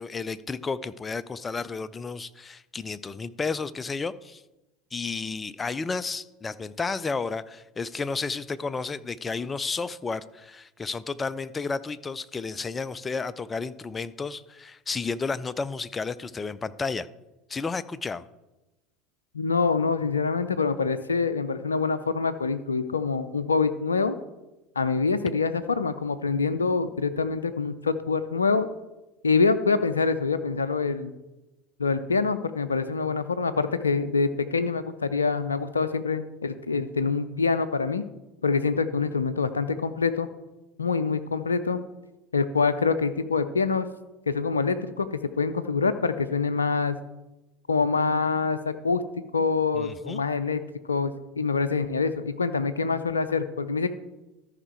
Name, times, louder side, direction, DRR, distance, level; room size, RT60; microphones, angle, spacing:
voice 1, 0.0-4.4 4.9-17.1 17.5-18.2 49.7-50.2, left 4 dB, 20° left, 16 dB, 0.4 m, -32 dB
voice 2, 19.3-24.2 24.8-28.7 29.2-31.1 31.8-38.1 38.4-40.3 40.8-41.8 42.3-43.9 44.3-47.0 47.7-49.0 49.3-50.6 50.9-53.9, left 4 dB, 85° left, 12 dB, 0.4 m, -25 dB
13.5 x 5.5 x 4.5 m, 1.0 s
figure-of-eight pair, 70°, 0 cm